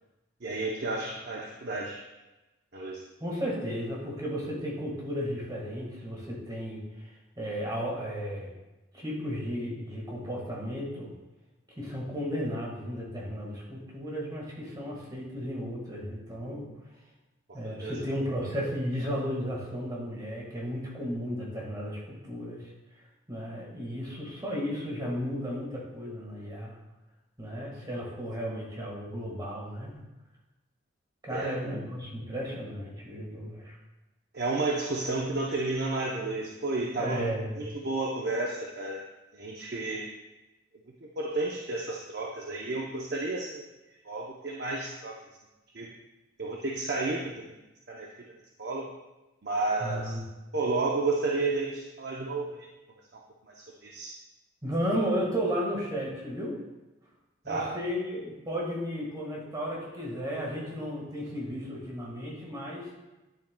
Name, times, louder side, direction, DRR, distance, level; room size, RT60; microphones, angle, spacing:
voice 1, 0.4-2.0 2.7-3.0 17.5-18.0 31.3-31.6 34.3-39.1 39.3-40.1 41.2-45.2 45.7-45.9 46.4-47.6 47.9-48.1 48.6-48.9 49.4-50.2 50.5-52.7 53.1-54.2 57.5-57.8, right 3 dB, 50° right, -1 dB, 0.7 m, -32 dB
voice 2, 3.2-8.5 8.9-11.1 11.8-16.7 17.5-22.7 23.3-26.8 27.4-30.0 31.2-33.8 37.0-37.6 49.8-50.2 54.6-56.6 57.4-62.9, equal, 20° right, -3 dB, 1.6 m, -34 dB
10.0 x 7.3 x 2.2 m, 1.1 s
head